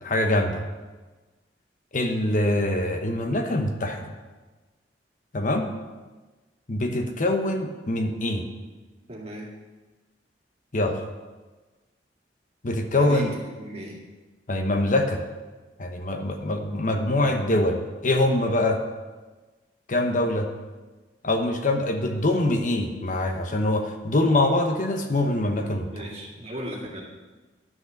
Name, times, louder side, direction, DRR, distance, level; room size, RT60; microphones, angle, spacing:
voice 1, 0.0-0.6 1.9-4.0 5.3-5.7 6.7-8.5 10.7-11.0 12.6-13.3 14.5-15.2 15.8-18.8 19.9-20.5 21.2-25.9, left 1 dB, 45° left, 4 dB, 1.0 m, -24 dB
voice 2, 9.1-9.5 12.9-14.0 25.9-27.0, equal, 35° right, -2 dB, 2.2 m, -36 dB
11.0 x 6.3 x 6.5 m, 1.3 s
head